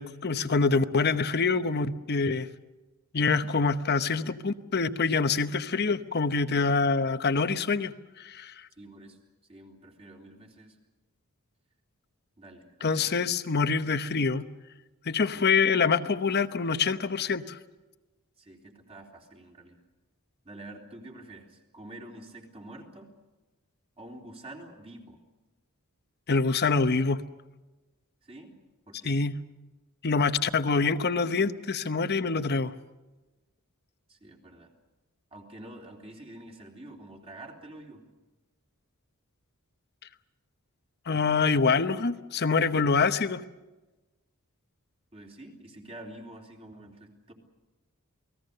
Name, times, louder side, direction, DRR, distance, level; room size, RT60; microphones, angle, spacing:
voice 1, 0.0-2.5 3.1-8.7 12.8-14.5 15.1-17.6 26.3-27.2 29.0-29.3 30.0-32.7 41.1-43.4, left 4 dB, 50° left, 11 dB, 0.9 m, -25 dB
voice 2, 8.8-10.8 12.4-13.1 15.3-15.5 18.4-19.8 20.5-23.1 24.0-25.2 28.2-28.5 28.9-29.2 34.1-34.7 35.3-38.1 45.1-47.3, right 1 dB, 30° right, 1 dB, 3.5 m, -47 dB
29.0 x 19.5 x 6.7 m, 1.1 s
head